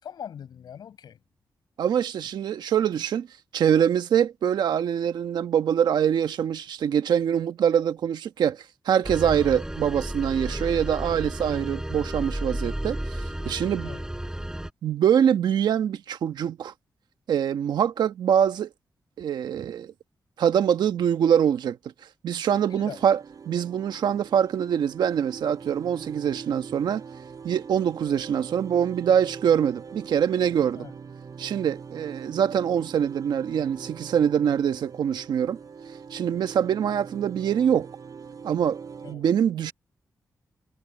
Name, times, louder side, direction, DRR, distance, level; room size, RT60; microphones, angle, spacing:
voice 1, 0.0-1.2 13.8-14.0 22.7-23.0 30.8-30.9 39.0-39.3, left 8 dB, 85° left, 5.5 m, -41 dB
voice 2, 1.8-3.3 3.5-13.9 14.8-16.7 17.3-18.7 19.2-19.9 20.4-21.8 22.2-23.2 23.5-27.0 27.4-30.9 31.4-35.6 36.1-37.9 38.4-38.8 39.1-39.7, right 8 dB, 90° right, 1.2 m, -24 dB
sound 1, 9.0-14.7, right 1 dB, 10° right, 8.0 m, -32 dB
sound 2, 22.5-39.1, right 6 dB, 60° right, 3.2 m, -42 dB
cardioid pair, 75°, 7 cm